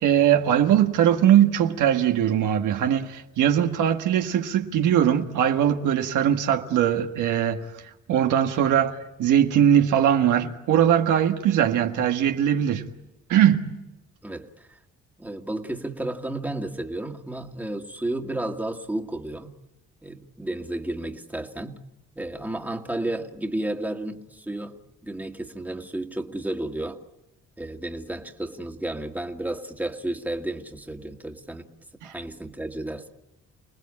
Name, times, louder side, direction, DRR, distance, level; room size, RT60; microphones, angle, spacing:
voice 1, 0.0-7.6 8.1-12.8 13.3-13.7, right 10 dB, 85° right, 1.7 m, -21 dB
voice 2, 14.2-14.8 15.2-19.5 20.0-21.8 22.2-27.0 27.6-31.7 32.0-33.1, right 1 dB, 5° right, 2.0 m, -32 dB
29.5 x 19.5 x 8.6 m
cardioid pair, 90°, 30 cm